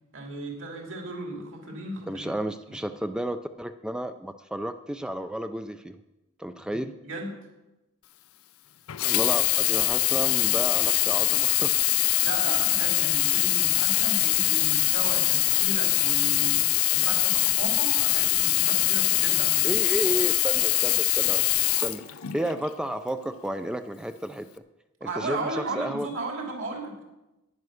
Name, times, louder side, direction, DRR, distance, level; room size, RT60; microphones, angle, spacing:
voice 1, 0.1-2.3 2.7-2.8 6.7-7.3 12.2-16.6 16.9-19.7 25.0-26.9, right 2 dB, 65° right, 2 dB, 3.0 m, -35 dB
voice 2, 2.1-6.0 6.4-6.9 9.0-11.8 19.6-21.4 21.8-22.0 22.3-24.6 25.0-26.1, right 1 dB, 5° right, 9 dB, 0.4 m, -32 dB
Sink (filling or washing), 8.9-22.7 23.4-23.5, left 17 dB, 90° left, 0.6 m, -23 dB
10.5 x 9.5 x 6.3 m, 0.99 s
head